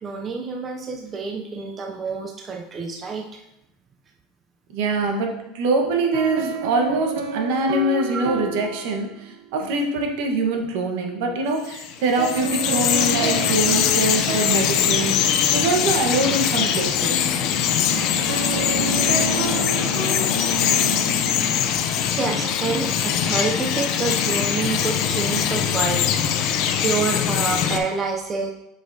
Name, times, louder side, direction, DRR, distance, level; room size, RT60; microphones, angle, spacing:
voice 1, 0.0-3.4 22.0-26.1 26.4-28.5, right 4 dB, 20° right, 1 dB, 0.4 m, -28 dB
voice 2, 4.7-17.3, right 2 dB, 65° right, 3 dB, 1.1 m, -24 dB
sound 1, 6.1-9.5 12.2-16.0 18.3-20.3, right 5 dB, 85° right, 0.7 m, -30 dB
Bird vocalization bird call bird song, 11.6-27.8, left 8 dB, 45° left, 0.5 m, -22 dB
7.8 x 5.1 x 2.7 m, 0.90 s
cardioid pair, 165°, 0 cm